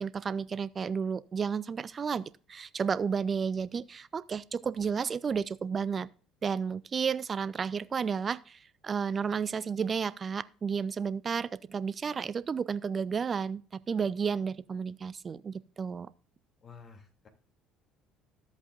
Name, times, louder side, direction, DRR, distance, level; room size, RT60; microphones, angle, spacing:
voice 1, 0.0-6.1 6.4-13.6 13.9-16.1, right 6 dB, 35° right, 0.5 m, -32 dB
voice 2, 16.6-17.3, left 5 dB, 40° left, 2.7 m, -51 dB
13.5 x 8.1 x 2.5 m
figure-of-eight pair, 55°, 0 cm